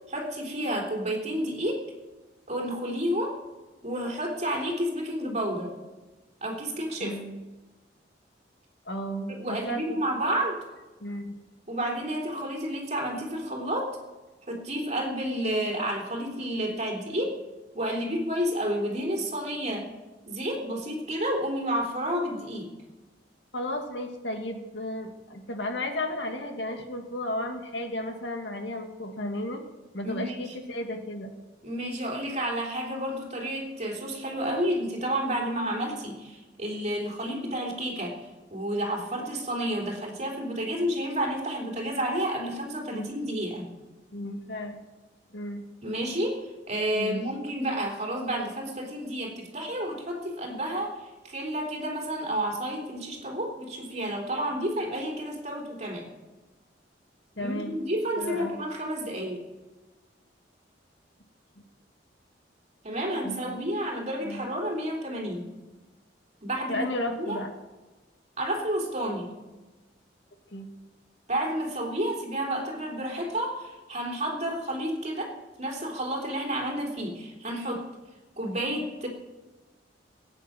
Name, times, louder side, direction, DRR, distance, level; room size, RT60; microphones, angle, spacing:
voice 1, 0.1-1.9 2.5-3.4 3.8-5.8 6.4-7.2 9.4-10.6 11.7-14.0 14.5-17.4 17.7-19.9 20.3-22.7 30.0-30.4 31.6-38.1 38.5-43.7 45.8-56.1 57.4-59.4 62.8-65.5 66.4-66.9 67.2-67.4 68.4-69.3 71.3-75.3 75.6-77.9 78.4-79.1, right 1 dB, 40° right, 0 dB, 3.4 m, -30 dB
voice 2, 7.0-7.4 8.9-10.0 11.0-11.4 23.5-29.6 29.9-31.3 42.9-43.2 44.1-44.8 45.3-45.6 46.9-47.2 57.4-57.8 58.2-58.6 63.2-63.6 64.2-64.5 66.7-67.5 70.5-70.7, left 1 dB, 70° left, 4 dB, 2.1 m, -34 dB
17.5 x 9.1 x 7.6 m, 1.2 s
head